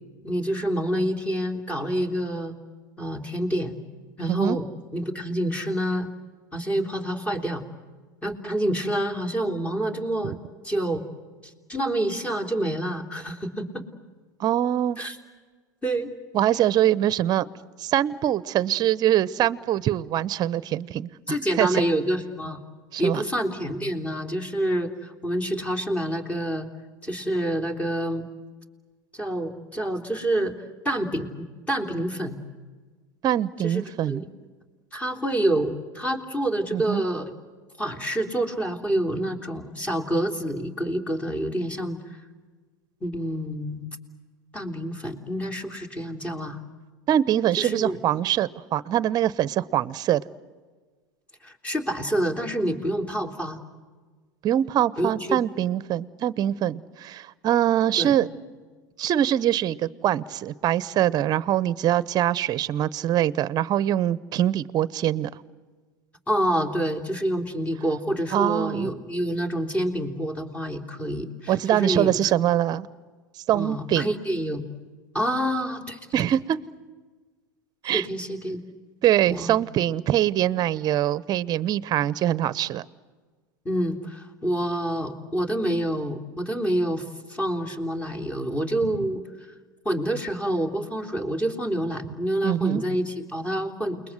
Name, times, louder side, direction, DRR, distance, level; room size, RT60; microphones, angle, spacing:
voice 1, 0.2-2.5 3.0-3.7 4.2-4.7 4.9-6.1 6.5-7.7 8.2-10.4 10.6-11.0 11.4-13.8 15.0-15.2 15.8-16.1 21.3-22.6 23.0-26.7 27.0-28.3 29.1-32.4 33.6-34.3 34.9-37.3 37.8-42.2 43.0-44.0 44.5-46.6 47.6-48.0 51.4-53.6 55.0-55.4 58.0-58.1 66.3-72.1 73.5-74.7 75.1-76.0 77.9-78.6 79.3-79.6 83.6-89.2 89.8-94.0, right 1 dB, 15° left, 3 dB, 3.3 m, -27 dB
voice 2, 14.4-15.0 16.3-17.5 17.8-21.1 21.6-21.8 22.9-23.2 33.2-34.2 36.7-37.0 47.1-50.2 54.4-58.3 59.0-65.3 68.3-68.9 71.5-72.9 73.5-74.1 76.1-76.6 77.8-78.1 79.0-82.8 92.4-92.8, right 11 dB, 40° right, 18 dB, 0.9 m, -23 dB
29.0 x 21.5 x 8.0 m, 1.4 s
hypercardioid pair, 100°, 10 cm